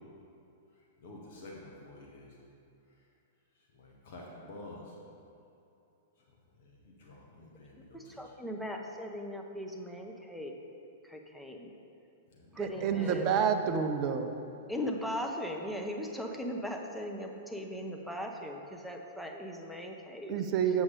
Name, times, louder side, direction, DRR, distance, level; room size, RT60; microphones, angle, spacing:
voice 1, 1.0-2.3 3.8-4.8 7.0-8.0 12.4-12.9, left 2 dB, 55° left, -2 dB, 1.1 m, -49 dB
voice 2, 7.9-10.6 11.0-11.7 12.5-13.3 14.7-20.4 20.7-20.8, equal, ahead, 1 dB, 0.8 m, -39 dB
voice 3, 12.6-14.3 20.3-20.8, right 7 dB, 40° right, 7 dB, 0.6 m, -29 dB
7.7 x 7.1 x 3.8 m, 2.8 s
figure-of-eight pair, 100°, 0 cm